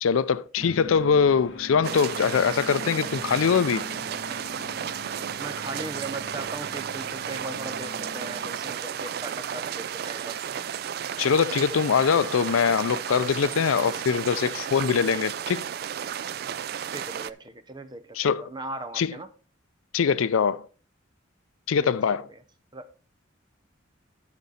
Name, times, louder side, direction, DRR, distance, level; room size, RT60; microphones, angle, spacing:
voice 1, 0.0-3.9 11.2-15.7 18.1-18.4 19.0-19.1 19.9-20.7 21.7-22.3, left 6 dB, 85° left, 0.4 m, -23 dB
sound 1, 0.6-8.8, left 3 dB, 60° left, 1.4 m, -42 dB
sound 2, 1.8-17.3, right 8 dB, 50° right, 0.3 m, -33 dB
voice 2, 5.4-10.4 16.9-19.3 21.8-21.9 22.7-22.9, right 2 dB, 20° right, 0.6 m, -38 dB
12.0 x 5.3 x 4.2 m
head